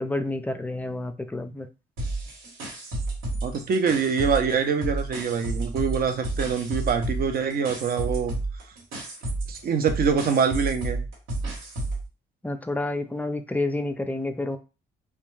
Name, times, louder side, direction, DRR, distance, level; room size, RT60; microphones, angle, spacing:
voice 1, 0.0-1.7 12.4-14.6, left 2 dB, 10° left, 8 dB, 0.3 m, -29 dB
sound 1, 2.0-4.5 4.8-12.1, right 2 dB, 85° right, 1.2 m, -31 dB
voice 2, 3.4-8.3 9.5-11.0, right 6 dB, 50° right, 6 dB, 0.6 m, -24 dB
2.2 x 2.2 x 3.1 m, 0.30 s
cardioid pair, 90°, 20 cm